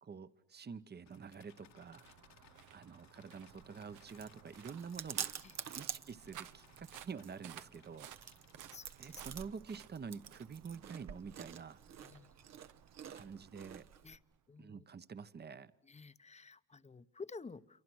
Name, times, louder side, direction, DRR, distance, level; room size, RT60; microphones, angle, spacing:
voice 1, 0.0-2.0 2.7-5.3 5.8-8.1 9.0-11.8 13.1-13.8 14.6-15.7, right 6 dB, 35° right, 14 dB, 1.1 m, -48 dB
sound 1, 1.1-9.8, left 9 dB, 65° left, 1.6 m, -67 dB
sound 2, 1.1-14.5, right 10 dB, 85° right, 1.2 m, -58 dB
Chewing mastication, 3.5-14.2, right 9 dB, 60° right, 1.2 m, -48 dB
voice 2, 8.4-9.3 12.0-12.6 14.0-14.2 14.5-14.8 15.8-17.8, left 4 dB, 20° left, 13 dB, 0.9 m, -52 dB
28.0 x 24.0 x 6.3 m, 0.74 s
cardioid pair, 90°, 30 cm